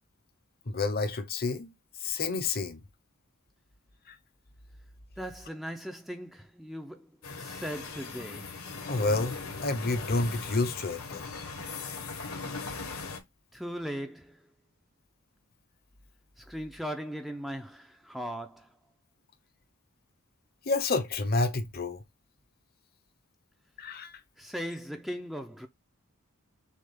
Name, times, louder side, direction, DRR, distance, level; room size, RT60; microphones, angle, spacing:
voice 1, 0.7-1.7 2.0-2.8 4.1-4.2 8.9-9.4 9.6-11.3 20.7-22.0 23.8-24.1, left 3 dB, 45° left, 0.8 m, -29 dB
voice 2, 5.2-8.6 13.5-14.5 16.4-18.8 24.4-25.7, equal, ahead, 0.5 m, -38 dB
sound 1, 7.2-13.2, left 4 dB, 75° left, 1.3 m, -39 dB
6.4 x 2.4 x 3.4 m
head